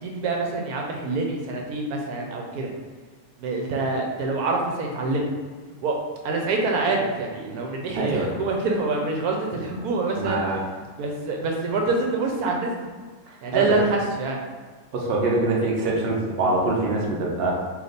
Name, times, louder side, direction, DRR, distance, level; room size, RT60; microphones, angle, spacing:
voice 1, 0.0-2.7 3.4-5.3 5.8-5.9 6.2-10.4 11.0-12.9 13.4-14.4, right 3 dB, 75° right, 0 dB, 1.1 m, -26 dB
voice 2, 7.9-8.3 10.2-10.6 13.5-13.7 14.9-17.5, right 2 dB, 55° right, -2 dB, 0.7 m, -24 dB
3.3 x 2.8 x 4.0 m, 1.4 s
omnidirectional pair, 1.6 m